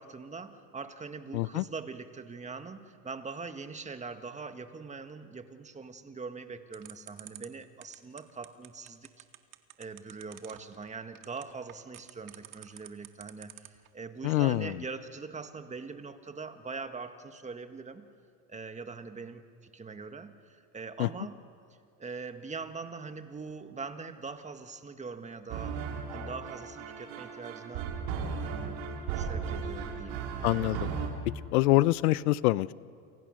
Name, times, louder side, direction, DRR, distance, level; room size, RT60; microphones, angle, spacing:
voice 1, 0.0-9.2 9.8-18.0 18.5-21.4 22.0-25.8 26.1-27.9 28.4-28.9 29.1-30.2, right 4 dB, 15° right, 8 dB, 1.6 m, -42 dB
voice 2, 1.3-1.6 14.2-14.7 21.0-21.1 30.4-30.9 31.5-32.7, left 18 dB, 75° left, 19 dB, 0.7 m, -25 dB
sound 1, 6.7-13.9, right 15 dB, 45° right, 1.8 m, -48 dB
sound 2, 25.5-31.1, right 6 dB, 60° right, 4.9 m, -36 dB
28.5 x 28.0 x 6.4 m, 2.3 s
supercardioid pair, 115°, 45 cm